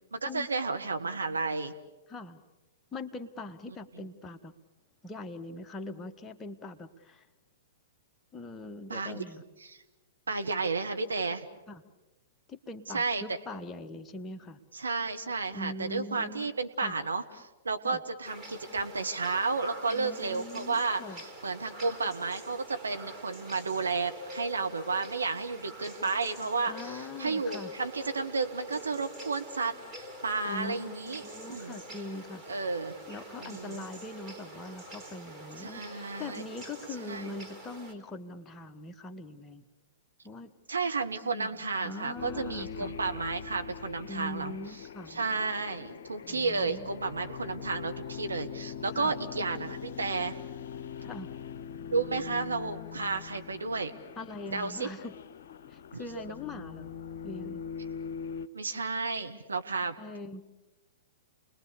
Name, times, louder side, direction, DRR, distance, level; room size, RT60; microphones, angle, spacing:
voice 1, 0.1-1.8 3.7-4.1 8.9-9.2 9.7-9.8 10.3-11.5 12.9-13.4 14.7-17.2 17.6-21.0 21.4-29.7 30.2-31.2 31.5-31.8 32.5-32.9 33.4-33.8 35.6-36.4 37.0-37.3 40.7-44.6 45.1-50.4 51.9-53.9 54.5-54.9 55.9-56.1 58.5-59.9, right 4 dB, 75° right, 6 dB, 1.6 m, -32 dB
voice 2, 2.1-2.4 2.9-4.5 5.0-7.3 8.3-9.4 11.7-11.9 12.5-14.6 15.5-16.5 16.8-17.0 17.8-18.0 19.9-21.2 26.7-27.7 30.5-32.4 33.1-39.6 40.2-40.5 41.3-41.5 41.8-42.9 44.1-45.4 46.3-46.9 48.9-49.1 51.0-51.3 54.2-55.1 55.7-56.9 57.2-57.6 60.0-60.4, left 2 dB, 15° left, 6 dB, 1.2 m, -42 dB
sound 1, 18.2-37.9, right 1 dB, 25° right, 4.1 m, -46 dB
sound 2, 42.2-58.5, left 7 dB, 55° left, 0.8 m, -42 dB
29.5 x 21.0 x 7.0 m, 1.1 s
figure-of-eight pair, 110°, 0 cm